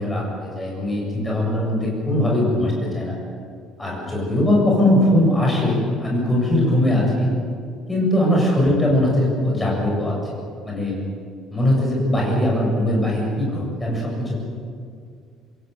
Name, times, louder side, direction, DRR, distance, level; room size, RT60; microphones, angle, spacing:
voice 1, 0.0-3.1 3.8-7.3 7.9-10.1 10.6-11.0 11.5-14.4, left 1 dB, 10° left, -2 dB, 7.2 m, -20 dB
26.5 x 22.0 x 8.2 m, 2.3 s
cardioid pair, 175°, 0 cm